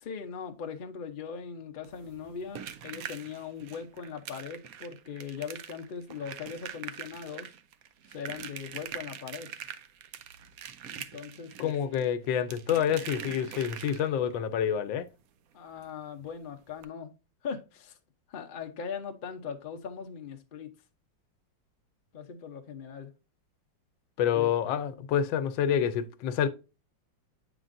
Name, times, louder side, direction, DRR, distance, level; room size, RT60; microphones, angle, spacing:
voice 1, 0.0-7.5 8.1-9.5 10.9-11.8 15.5-17.1 17.4-18.0 18.3-20.7 22.1-23.1 24.3-24.5, left 6 dB, 60° left, 0.5 m, -40 dB
sound 1, 1.8-14.3 15.8-15.9 16.2-16.3 16.7-16.8, right 9 dB, 75° right, 0.8 m, -44 dB
voice 2, 11.6-15.1 24.2-26.5, left 9 dB, 85° left, 1.4 m, -28 dB
8.0 x 5.0 x 2.5 m
omnidirectional pair, 2.0 m